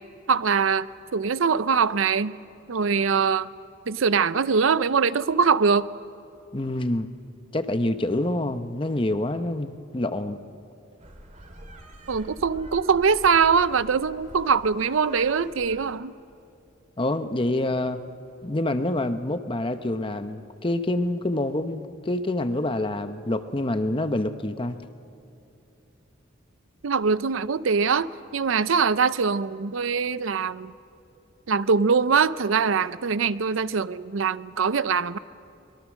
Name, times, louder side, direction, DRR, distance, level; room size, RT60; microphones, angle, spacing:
voice 1, 0.3-0.9 1.1-2.4 2.7-3.5 3.9-5.9 12.1-16.1 26.8-30.7 31.5-35.2, right 5 dB, 80° right, 16 dB, 0.6 m, -22 dB
voice 2, 6.5-7.1 7.5-10.4 17.0-18.0 18.4-24.8, left 1 dB, 25° left, 9 dB, 0.8 m, -27 dB
sound 1, 11.0-16.0, right 1 dB, 35° right, 2.1 m, -45 dB
24.5 x 22.0 x 6.4 m, 2.7 s
head